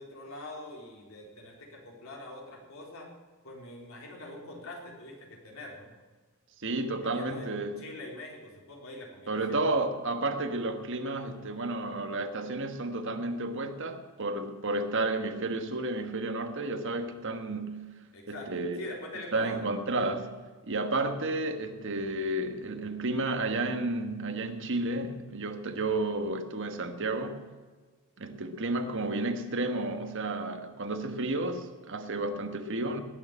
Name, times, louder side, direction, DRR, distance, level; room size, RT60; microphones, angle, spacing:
voice 1, 0.0-3.1 3.4-5.9 7.0-7.5 7.8-9.7 18.1-19.6, left 1 dB, 70° left, 4.0 m, -44 dB
voice 2, 6.6-7.7 9.3-17.8 18.3-18.8 19.3-20.3 20.7-27.4 28.2-33.0, right 2 dB, 60° right, 1.4 m, -31 dB
19.5 x 6.8 x 8.9 m
head